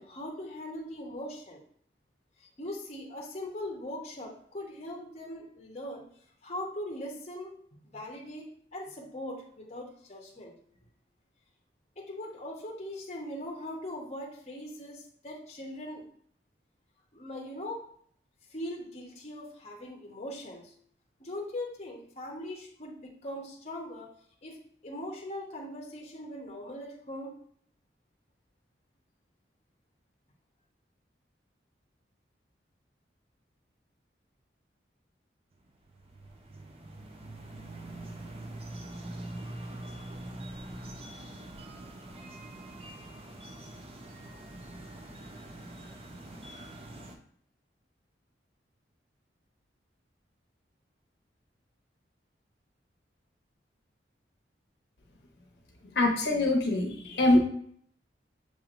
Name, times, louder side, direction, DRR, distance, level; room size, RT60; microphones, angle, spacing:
voice 1, 0.0-1.6 2.4-6.1 6.4-7.5 7.8-10.5 12.0-16.1 17.1-17.8 18.5-20.7 21.2-24.1 24.4-27.3, left 1 dB, 35° left, -1 dB, 0.8 m, -40 dB
sound 1, 35.5-47.2, right 1 dB, 30° right, 0.4 m, -44 dB
voice 2, 55.9-57.4, left 2 dB, 70° left, 2 dB, 0.8 m, -24 dB
6.8 x 3.0 x 2.5 m, 0.62 s
head